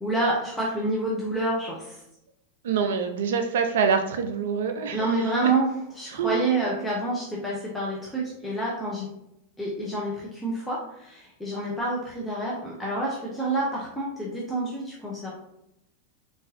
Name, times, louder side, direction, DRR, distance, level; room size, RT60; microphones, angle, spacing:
voice 1, 0.0-2.0 4.9-9.1 9.6-15.3, right 2 dB, 5° left, -5 dB, 0.7 m, -28 dB
voice 2, 2.6-5.1 5.4-5.5 6.1-6.5, right 6 dB, 60° right, 7 dB, 0.3 m, -25 dB
3.8 x 2.6 x 2.5 m, 0.80 s
figure-of-eight pair, 90°, 0 cm